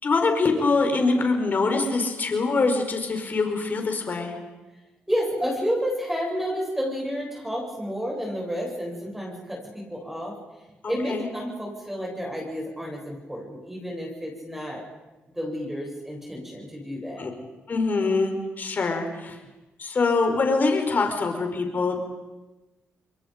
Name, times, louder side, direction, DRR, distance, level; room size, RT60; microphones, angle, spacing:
voice 1, 0.0-4.3 10.8-11.3 17.2-17.3 17.7-19.4 19.8-22.0, left 3 dB, 45° left, 4 dB, 5.0 m, -24 dB
voice 2, 5.1-10.4 10.9-14.8 15.3-17.3, equal, 5° right, -2 dB, 7.9 m, -30 dB
28.5 x 22.5 x 5.3 m, 1.1 s
cardioid pair, 75°, 4 cm